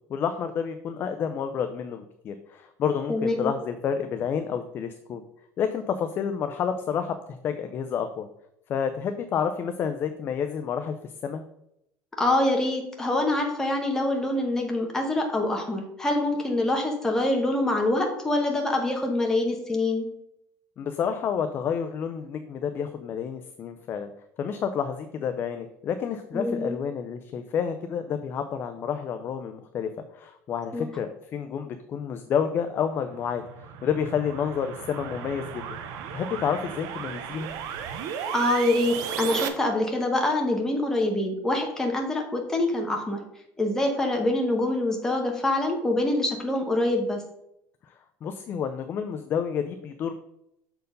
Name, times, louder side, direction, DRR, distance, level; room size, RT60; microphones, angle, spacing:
voice 1, 0.1-5.2 5.6-8.3 8.7-10.9 11.2-11.4 20.8-24.1 24.4-33.4 33.8-35.8 36.1-37.5 47.9-48.0 48.2-50.1, left 7 dB, 35° left, 8 dB, 0.4 m, -29 dB
voice 2, 3.1-3.5 12.2-20.1 26.3-26.8 30.7-30.9 38.3-43.2 43.6-47.2, left 1 dB, 5° left, 1 dB, 1.2 m, -25 dB
sound 1, 33.0-39.5, right 8 dB, 60° right, 0.8 m, -35 dB
6.6 x 4.5 x 5.2 m, 0.80 s
cardioid pair, 160°, 7 cm